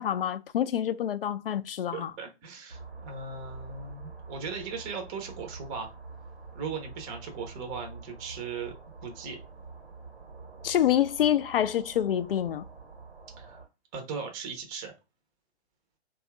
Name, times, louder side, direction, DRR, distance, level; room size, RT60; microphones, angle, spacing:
voice 1, 0.0-2.1 10.6-12.7, left 10 dB, 60° left, 0.4 m, -27 dB
voice 2, 1.9-5.9 6.5-8.7 9.0-9.4 13.4-13.6 13.9-14.9, right 5 dB, 20° right, 0.6 m, -38 dB
sound 1, 2.7-13.7, right 4 dB, 80° right, 1.0 m, -46 dB
2.7 x 2.3 x 3.5 m
figure-of-eight pair, 130°, 33 cm